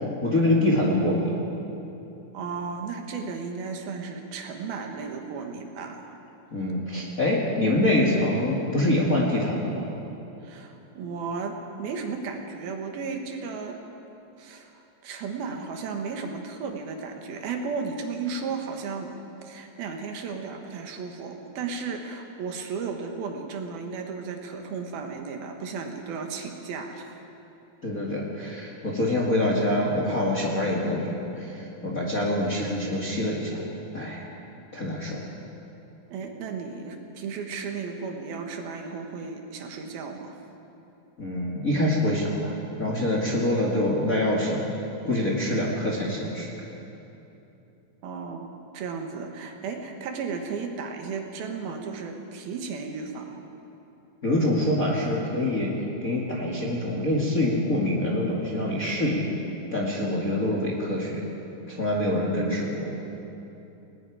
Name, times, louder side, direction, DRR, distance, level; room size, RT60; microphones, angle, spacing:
voice 1, 0.2-1.4 6.5-9.9 27.8-31.1 31.4-33.6 33.9-34.3 34.7-35.2 41.2-42.5 42.8-44.8 45.0-46.5 54.2-55.7 56.0-59.2 59.7-61.3 61.7-62.9, left 1 dB, 30° left, -3 dB, 2.0 m, -25 dB
voice 2, 2.3-6.1 10.4-13.8 14.4-19.2 19.4-27.1 36.1-40.4 48.0-48.5 48.7-53.4, right 5 dB, 75° right, 3 dB, 3.3 m, -34 dB
29.5 x 19.0 x 4.9 m, 2.9 s
omnidirectional pair, 4.5 m